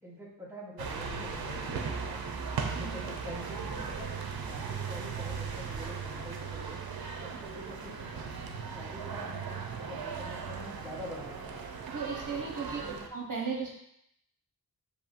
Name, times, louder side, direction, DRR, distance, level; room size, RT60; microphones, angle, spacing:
voice 1, 0.0-2.2 2.7-4.1 4.4-6.8 7.2-8.2 8.5-11.6 12.6-13.0, left 1 dB, 5° right, -4 dB, 1.0 m, -46 dB
sound 1, 0.8-13.1, right 5 dB, 75° right, 0.6 m, -37 dB
voice 2, 11.9-13.8, right 5 dB, 55° right, -3 dB, 1.0 m, -36 dB
6.8 x 2.8 x 2.5 m, 0.74 s
wide cardioid pair, 75°, 37 cm